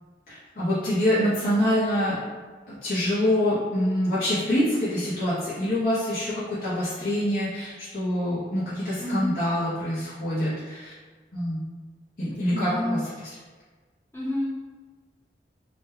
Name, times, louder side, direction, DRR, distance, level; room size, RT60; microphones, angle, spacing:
voice 1, 0.3-2.2 2.7-10.9 11.3-11.7 12.2-13.3, left 1 dB, 50° left, -12 dB, 0.8 m, -25 dB
voice 2, 9.0-9.3 12.5-13.0 14.1-14.5, left 1 dB, 15° left, -8 dB, 0.8 m, -29 dB
2.9 x 2.3 x 3.2 m, 1.4 s
head